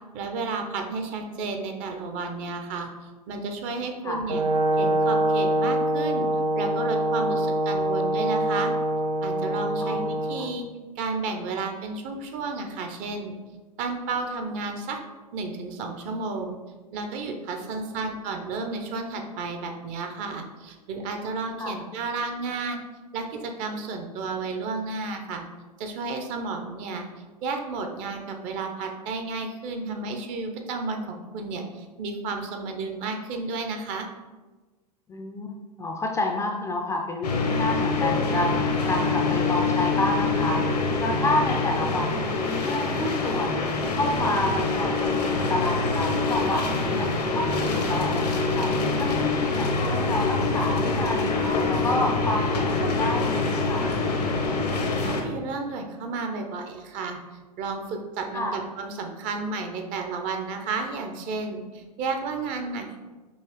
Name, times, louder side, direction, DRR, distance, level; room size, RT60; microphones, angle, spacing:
voice 1, 0.1-4.4 4.8-6.3 6.5-8.7 9.2-10.7 11.0-13.4 13.8-15.0 15.3-16.6 16.9-22.8 23.1-25.4 25.8-27.0 27.4-34.1 55.0-57.2 57.6-63.0, right 4 dB, 40° right, 4 dB, 0.6 m, -32 dB
Brass instrument, 4.3-10.4, right 1 dB, 80° right, 0.6 m, -24 dB
voice 2, 17.7-18.1 21.6-21.7 35.1-35.5 35.8-48.7 49.0-51.4 51.7-53.9 58.3-58.6, left 2 dB, 15° left, 1 dB, 0.4 m, -29 dB
sound 1, 37.2-55.2, left 3 dB, 75° left, 0.8 m, -25 dB
5.5 x 2.9 x 3.0 m, 1.3 s
figure-of-eight pair, 90°, 21 cm